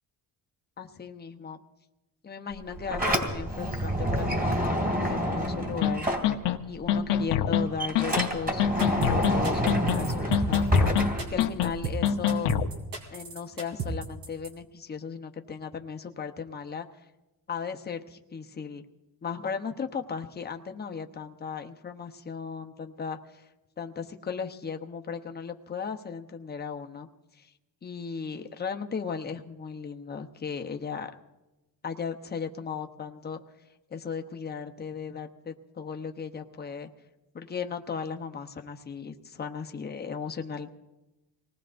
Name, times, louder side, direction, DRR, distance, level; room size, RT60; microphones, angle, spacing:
voice 1, 0.8-1.6 2.2-6.1 6.7-11.0 11.3-12.5 13.1-16.9 17.5-18.8 19.2-23.5 23.8-27.1 27.3-27.5 27.8-31.1 31.8-33.4 33.9-36.9 37.3-40.7, left 6 dB, 25° left, 4 dB, 0.8 m, -36 dB
Sliding door, 2.5-6.9 7.2-11.9, equal, 20° right, 2.5 m, -28 dB
sound 1, 5.8-5.9 6.2-6.6 6.9-7.6 8.0-8.3 8.6-9.4 9.7-10.1 10.3-11.1 11.4-11.7 12.0-12.7, left 10 dB, 90° left, 0.9 m, -25 dB
sound 2, 8.8-14.5, right 5 dB, 80° right, 3.3 m, -35 dB
25.5 x 19.0 x 2.6 m, 1.0 s
cardioid pair, 115°, 42 cm